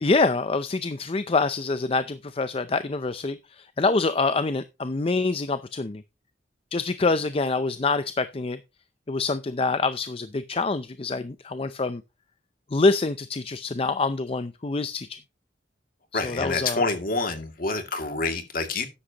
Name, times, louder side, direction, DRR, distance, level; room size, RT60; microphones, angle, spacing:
voice 1, 0.0-6.0 6.7-8.6 9.1-12.0 12.7-15.2 16.1-16.8, left 3 dB, 30° left, 0.5 m, -26 dB
voice 2, 16.1-18.9, left 3 dB, 50° left, 2.4 m, -27 dB
13.0 x 10.0 x 2.9 m
head